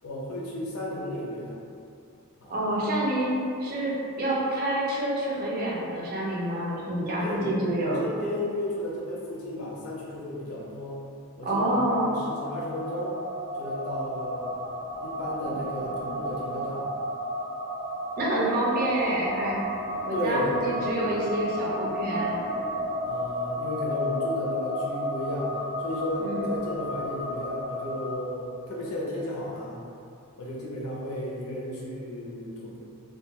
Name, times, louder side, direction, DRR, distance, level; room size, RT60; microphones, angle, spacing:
voice 1, 0.0-1.6 2.4-2.5 7.2-11.0 11.4-13.1 13.5-14.5 15.0-16.9 20.1-20.5 23.1-25.5 25.8-29.8 30.4-32.8, left 1 dB, 70° left, -4 dB, 0.6 m, -34 dB
voice 2, 2.5-8.0 11.4-12.0 18.2-19.6 20.0-22.4 26.2-26.5, right 1 dB, 45° right, -5 dB, 0.5 m, -27 dB
sound 1, 11.8-28.1, equal, 80° right, 0.8 m, -32 dB
2.3 x 2.2 x 2.8 m, 2.5 s
head